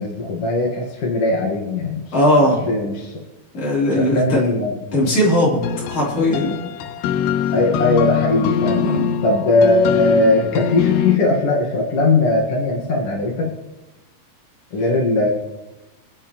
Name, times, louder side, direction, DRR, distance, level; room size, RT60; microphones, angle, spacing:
voice 1, 0.0-2.0 2.7-3.2 3.9-4.7 7.5-8.9 9.2-13.5 14.7-15.3, left 2 dB, 55° left, -2 dB, 1.6 m, -19 dB
voice 2, 2.1-2.7 3.5-4.4 4.9-5.6 5.9-6.7 7.5-7.6 8.7-9.2, left 1 dB, 35° left, -4 dB, 4.1 m, -18 dB
sound 1, 5.6-11.2, left 9 dB, 85° left, 2.5 m, -23 dB
26.5 x 9.3 x 3.1 m, 1.0 s
omnidirectional pair, 5.0 m